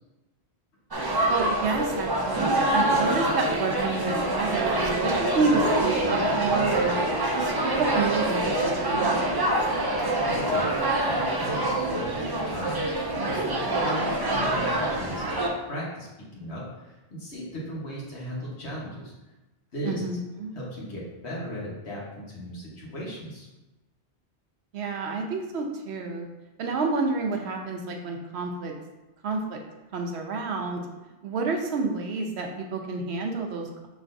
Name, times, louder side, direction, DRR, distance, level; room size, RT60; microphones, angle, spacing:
sound 1, 0.9-15.5, right 1 dB, 40° right, 0.3 m, -25 dB
voice 1, 1.3-6.9 7.3-9.5 19.8-20.5 24.7-26.3 26.6-28.7 29.2-29.6 29.9-30.8 31.2-33.9, right 4 dB, 75° right, 2 dB, 0.9 m, -29 dB
voice 2, 10.2-10.7 11.1-12.9 13.2-19.1 19.7-20.0 20.5-23.5, equal, 80° left, -5 dB, 1.5 m, -37 dB
5.9 x 3.2 x 2.6 m, 1.1 s
omnidirectional pair, 1.1 m